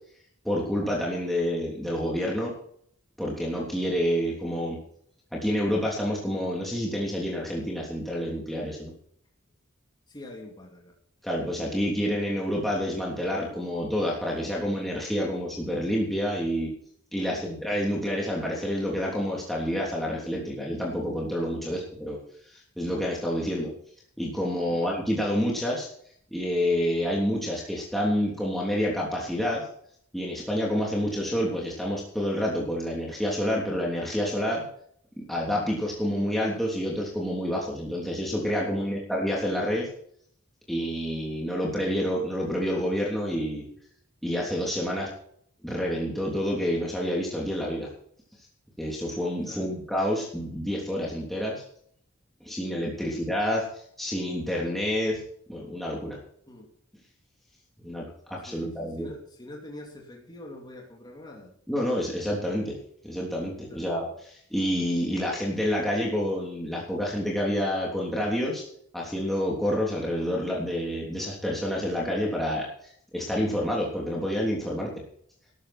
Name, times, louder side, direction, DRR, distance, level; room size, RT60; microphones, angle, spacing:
voice 1, 0.4-2.5 3.2-4.8 5.3-8.9 11.2-16.7 17.1-22.2 22.5-23.7 24.2-25.9 26.3-29.6 30.1-34.6 35.2-39.9 40.7-43.6 44.2-45.1 45.6-47.9 48.8-51.6 52.4-55.2 55.5-56.2 57.8-59.1 61.7-62.7 63.0-68.6 68.9-74.9, equal, ahead, -4 dB, 3.2 m, -28 dB
voice 2, 10.1-10.9 17.3-17.5 21.6-21.8 24.7-24.8 38.7-39.0 49.5-49.7 53.0-53.1 56.5-56.7 58.5-61.5 63.7-63.9, left 1 dB, 20° left, 0 dB, 2.8 m, -45 dB
13.0 x 13.0 x 4.4 m, 0.63 s
head